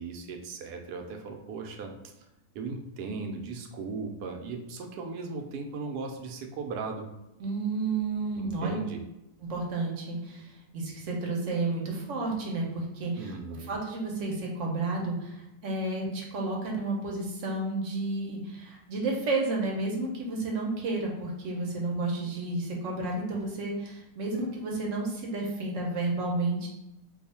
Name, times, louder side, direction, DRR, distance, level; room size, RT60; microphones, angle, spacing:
voice 1, 0.0-1.9 2.5-7.1 8.4-9.0 13.2-13.7, right 4 dB, 85° right, 4 dB, 1.1 m, -37 dB
voice 2, 7.4-8.7 9.4-13.3 13.7-26.7, right 2 dB, 55° right, -1 dB, 1.0 m, -31 dB
2.6 x 2.4 x 4.2 m, 0.92 s
omnidirectional pair, 1.7 m